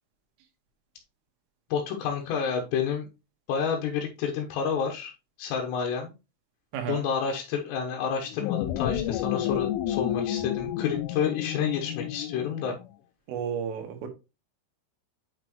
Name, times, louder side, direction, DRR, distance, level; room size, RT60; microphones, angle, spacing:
voice 1, 1.7-3.1 3.5-5.1 5.4-6.1 6.9-12.7, left 7 dB, 70° left, 3.0 m, -29 dB
voice 2, 6.7-7.0 13.3-14.1, right 8 dB, 90° right, 4.2 m, -32 dB
sound 1, 8.3-12.9, left 12 dB, 90° left, 3.1 m, -30 dB
8.6 x 5.9 x 3.0 m
omnidirectional pair, 5.6 m